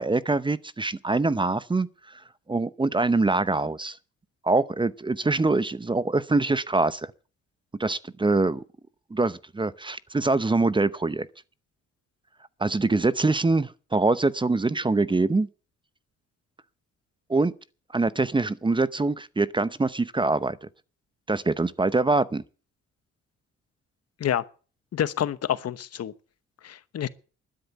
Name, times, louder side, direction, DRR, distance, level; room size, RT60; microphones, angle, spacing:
voice 1, 0.0-2.2 2.5-4.0 4.4-7.1 7.8-8.6 9.1-11.3 12.6-15.5 17.3-17.5 17.9-20.7 21.3-22.4, right 3 dB, 15° right, 0.7 m, -24 dB
voice 2, 24.9-26.1 26.6-27.1, left 10 dB, 55° left, 1.1 m, -28 dB
12.0 x 10.5 x 8.2 m
cardioid pair, 90°, 30 cm